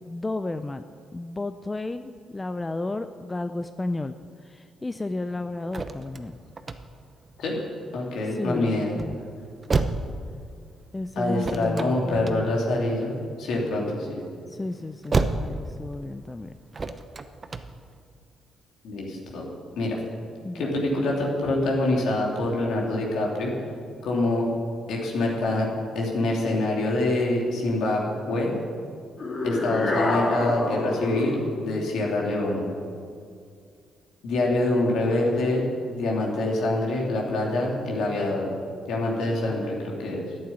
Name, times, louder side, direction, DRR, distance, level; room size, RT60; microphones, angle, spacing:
voice 1, 0.1-0.8 1.1-4.2 4.4-6.4 8.3-9.2 10.9-12.5 14.5-16.5 20.4-20.7, left 2 dB, 20° left, 10 dB, 0.4 m, -32 dB
sound 1, 5.1-18.0, right 3 dB, 30° right, 0.8 m, -32 dB
voice 2, 7.9-8.9 11.2-14.2 18.8-19.4 19.8-20.0 20.5-23.5 24.0-24.5 24.9-25.7 25.9-28.5 29.4-32.7 34.2-38.5 38.9-40.2, left 2 dB, 75° left, -2 dB, 2.8 m, -25 dB
sound 2, 29.2-31.5, left 2 dB, 45° left, 2.6 m, -26 dB
11.0 x 8.7 x 9.3 m, 2.2 s
cardioid pair, 90°, 0 cm